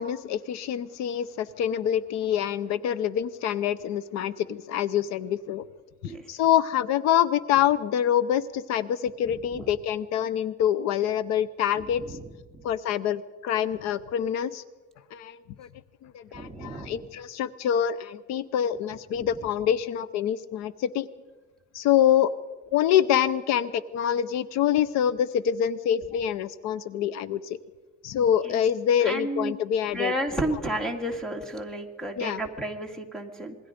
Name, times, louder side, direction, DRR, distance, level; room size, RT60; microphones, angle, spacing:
voice 1, 0.0-5.6 6.0-12.2 12.6-14.6 15.1-15.7 16.0-21.1 21.7-22.3 22.7-27.6 28.0-30.1 32.2-32.4, left 10 dB, 65° left, 17 dB, 0.7 m, -26 dB
voice 2, 16.3-17.1 19.2-19.4 28.4-28.5 29.0-29.6 29.9-33.6, right 1 dB, ahead, 5 dB, 2.0 m, -32 dB
26.5 x 21.0 x 5.1 m, 1.3 s
cardioid pair, 160°, 29 cm